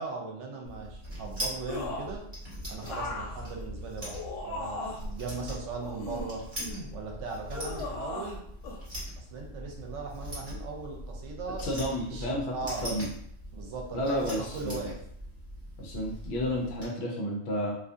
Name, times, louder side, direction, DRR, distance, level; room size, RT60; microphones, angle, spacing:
voice 1, 0.0-2.3 2.7-6.5 6.9-8.4 9.2-12.9 13.5-15.0, right 4 dB, 75° right, 0 dB, 0.9 m, -39 dB
sound 1, 0.6-16.9, equal, 30° right, 1.4 m, -41 dB
sound 2, 1.7-2.2 2.8-5.1 5.8-6.9 7.5-8.4 8.6-8.8, left 2 dB, 90° left, 1.0 m, -37 dB
voice 2, 11.6-12.5 12.8-13.1 13.9-14.9 15.8-17.7, equal, 65° left, -2 dB, 0.8 m, -31 dB
2.6 x 2.4 x 2.3 m, 0.69 s
omnidirectional pair, 1.3 m